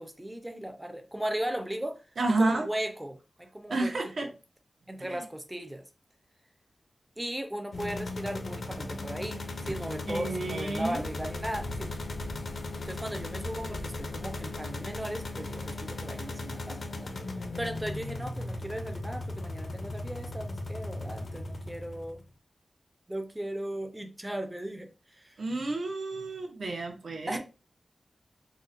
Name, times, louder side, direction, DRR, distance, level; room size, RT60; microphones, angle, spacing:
voice 1, 0.0-1.9 2.4-3.9 4.2-4.3 4.9-5.8 7.2-11.9 12.8-17.1 17.6-22.2 23.1-25.4 27.3-27.4, right 1 dB, 10° right, 0.5 m, -37 dB
voice 2, 2.2-2.7 3.7-4.3 5.0-5.2 9.6-9.7 10.1-11.0 25.4-27.4, right 2 dB, 65° right, 0.7 m, -30 dB
sound 1, 7.7-22.2, left 2 dB, 55° left, 0.5 m, -37 dB
3.8 x 2.1 x 2.5 m
wide cardioid pair, 130°, 0 cm